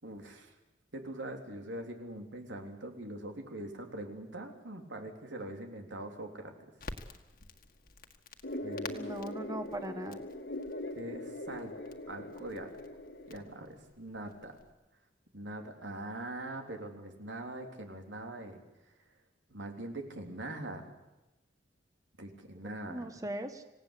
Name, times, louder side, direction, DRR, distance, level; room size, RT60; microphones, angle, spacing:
voice 1, 0.0-0.5 0.9-6.5 8.6-9.0 11.0-11.7 12.1-12.7 13.3-14.5 15.3-18.6 19.5-20.9 22.2-23.2, right 1 dB, 90° right, 3 dB, 3.6 m, -42 dB
Crackle, 6.8-14.7, left 3 dB, 50° left, 1.8 m, -51 dB
sound 1, 8.4-13.4, left 1 dB, 70° left, 2.0 m, -41 dB
voice 2, 8.9-10.2 22.6-23.6, right 1 dB, 20° right, 7 dB, 1.2 m, -40 dB
26.5 x 17.5 x 8.4 m, 1.0 s
head